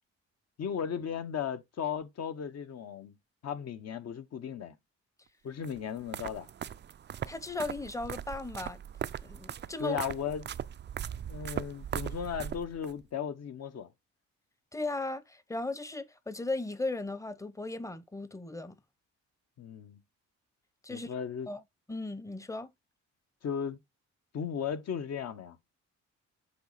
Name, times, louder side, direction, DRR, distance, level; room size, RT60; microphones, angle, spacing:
voice 1, 0.6-3.2 3.4-4.7 5.4-6.5 9.8-10.5 11.2-13.9 19.6-20.0 20.9-21.5 23.4-23.8 24.3-25.6, left 7 dB, 55° left, 1.1 m, -36 dB
sound 1, 5.6-12.9, right 9 dB, 35° right, 0.4 m, -39 dB
voice 2, 7.3-8.8 9.2-10.0 14.7-18.8 20.8-21.1 21.5-21.6 21.9-22.7, left 2 dB, 10° left, 0.8 m, -36 dB
8.0 x 3.2 x 4.1 m
cardioid pair, 90°, 30 cm